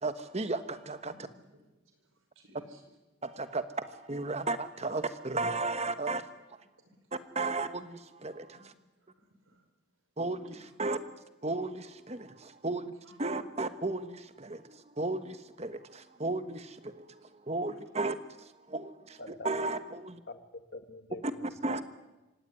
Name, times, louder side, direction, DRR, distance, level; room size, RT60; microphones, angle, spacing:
voice 1, 0.0-1.1 3.2-6.2 7.1-8.6 10.2-11.0 11.4-12.9 13.2-19.2 19.4-20.2 21.2-21.3 21.6-21.8, right 2 dB, 30° right, 10 dB, 1.3 m, -34 dB
voice 2, 1.1-2.8 3.5-3.6 6.8-7.4 8.5-9.7 10.5-10.8 13.0-13.2 17.0-17.1 17.7-17.8, right 1 dB, 85° right, 6 dB, 5.2 m, -62 dB
voice 3, 19.2-19.5 20.3-21.8, left 2 dB, 50° left, 7 dB, 2.0 m, -46 dB
25.0 x 17.5 x 9.8 m, 1.1 s
head